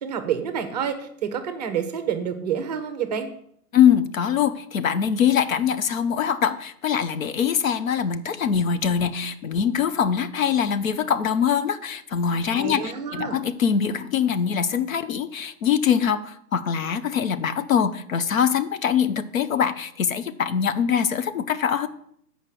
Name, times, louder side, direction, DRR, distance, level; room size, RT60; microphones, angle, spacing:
voice 1, 0.0-3.3 12.6-13.4, right 8 dB, 25° right, 8 dB, 0.7 m, -28 dB
voice 2, 3.7-21.9, left 8 dB, 55° left, 12 dB, 0.7 m, -23 dB
7.4 x 5.2 x 6.8 m, 0.69 s
hypercardioid pair, 135°, 48 cm